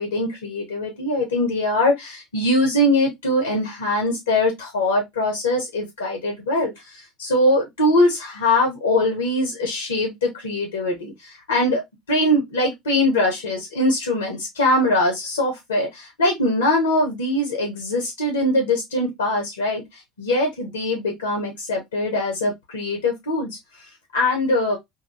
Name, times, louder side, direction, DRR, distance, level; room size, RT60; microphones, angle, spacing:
voice 1, 0.0-11.8 12.1-19.8 20.2-23.6 24.1-24.8, left 1 dB, 80° left, 0.9 m, -22 dB
2.8 x 2.6 x 2.6 m
figure-of-eight pair, 65°, 0 cm